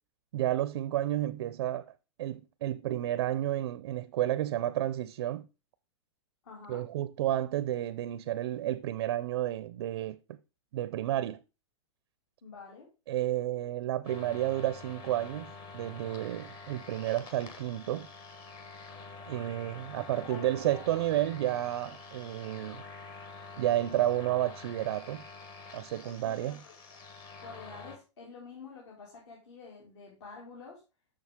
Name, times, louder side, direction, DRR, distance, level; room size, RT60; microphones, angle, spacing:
voice 1, 0.3-1.9 2.2-5.5 6.7-10.4 10.7-11.4 13.1-18.1 19.3-22.8 23.6-25.2 25.7-26.6, right 13 dB, 60° right, 0.4 m, -31 dB
voice 2, 6.4-6.8 12.4-12.9 19.9-20.8 26.0-27.0 27.4-30.8, left 5 dB, 65° left, 2.6 m, -49 dB
sound 1, 14.0-28.0, left 4 dB, 25° left, 1.0 m, -47 dB
6.4 x 6.4 x 3.5 m
hypercardioid pair, 150°, 16 cm